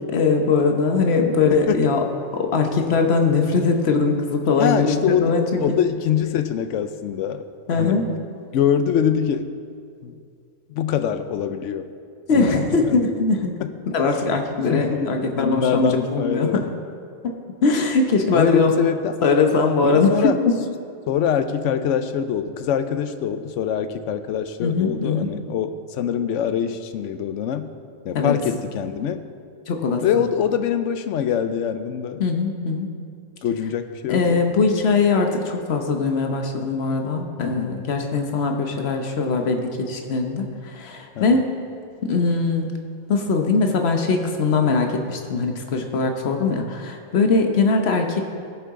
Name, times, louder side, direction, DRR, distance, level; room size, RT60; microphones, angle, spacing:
voice 1, 0.0-2.0 2.3-4.9 5.2-5.8 7.7-8.0 12.3-13.5 13.9-16.6 17.2-17.3 17.6-18.7 19.2-20.4 24.6-25.3 28.1-28.3 29.7-30.0 32.2-32.9 34.1-41.5 42.0-42.7 43.1-48.3, left 4 dB, 60° left, 4 dB, 1.1 m, -21 dB
voice 2, 1.5-1.8 4.6-7.4 7.7-8.0 8.5-9.5 10.0-10.1 10.7-11.9 12.3-13.0 13.6-13.7 14.7-16.7 18.3-19.2 19.8-20.4 21.1-27.7 28.0-29.2 30.0-32.2 33.4-34.4 37.4-37.7 41.2-41.4, left 8 dB, 85° left, 10 dB, 0.9 m, -24 dB
16.0 x 6.8 x 3.7 m, 2.3 s
omnidirectional pair, 1.2 m